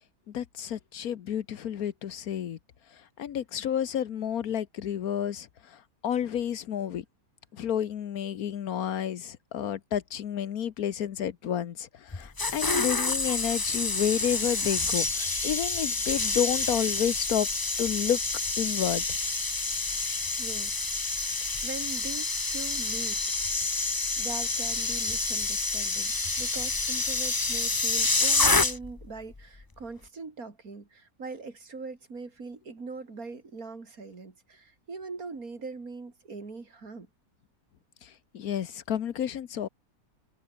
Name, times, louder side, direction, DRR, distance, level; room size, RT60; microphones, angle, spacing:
voice 1, 0.3-2.6 2.9-7.0 7.5-17.5 17.8-18.2 18.6-19.0 38.0-39.7, left 9 dB, 75° left, 1.5 m, -30 dB
sound 1, 12.1-29.1 29.3-29.6, left 3 dB, 20° left, 0.8 m, -28 dB
voice 2, 20.4-20.8 21.6-23.2 24.2-37.1, right 4 dB, 70° right, 3.6 m, -41 dB
omnidirectional pair, 1.6 m